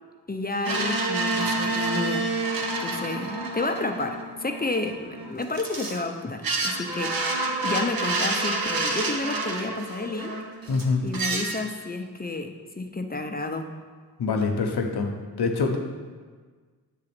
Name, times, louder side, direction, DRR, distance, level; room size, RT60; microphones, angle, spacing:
voice 1, 0.3-2.3 2.8-7.2 7.6-10.4 11.0-13.7, left 2 dB, 25° left, 5 dB, 0.6 m, -31 dB
sound 1, 0.6-6.0 6.4-10.8 11.1-11.6, right 2 dB, 65° right, 1.0 m, -28 dB
voice 2, 10.7-11.0 14.2-15.1 15.4-15.8, left 4 dB, 85° left, 3 dB, 0.9 m, -24 dB
7.4 x 3.8 x 6.0 m, 1.5 s
cardioid pair, 50°, 39 cm